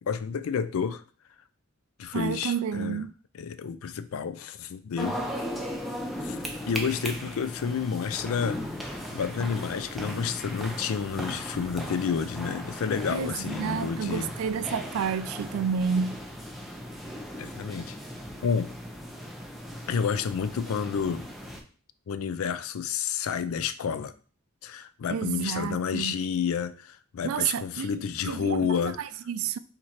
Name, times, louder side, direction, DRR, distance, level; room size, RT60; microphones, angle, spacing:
voice 1, 0.0-1.0 2.0-3.0 3.3-5.2 6.2-6.4 6.7-8.6 8.9-14.3 17.4-18.0 18.4-18.7 19.9-21.3 22.1-24.1 24.6-29.0, left 6 dB, 75° left, 0.4 m, -30 dB
voice 2, 2.1-3.1 13.1-16.2 25.1-26.2 27.2-28.0 28.3-29.6, right 7 dB, 75° right, 0.3 m, -30 dB
sound 1, 5.0-21.6, equal, ahead, 0.4 m, -37 dB
3.7 x 3.1 x 4.2 m
head